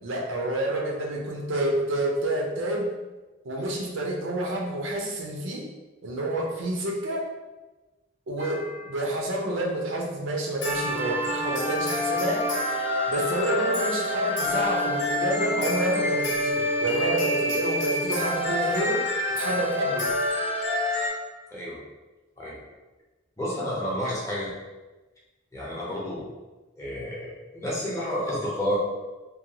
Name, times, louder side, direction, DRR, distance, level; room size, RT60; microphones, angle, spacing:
voice 1, 0.0-2.9 3.4-5.7 6.0-7.3 8.3-12.5 13.1-19.0 19.3-20.1, right 1 dB, 90° right, 0 dB, 0.6 m, -29 dB
sound 1, 8.4-9.0 10.6-21.1, left 1 dB, 85° left, 0.8 m, -27 dB
voice 2, 21.5-21.8 22.4-22.6 23.4-24.5 25.5-26.3 26.8-28.8, equal, 15° left, -6 dB, 0.6 m, -30 dB
2.7 x 2.2 x 2.7 m, 1.1 s
head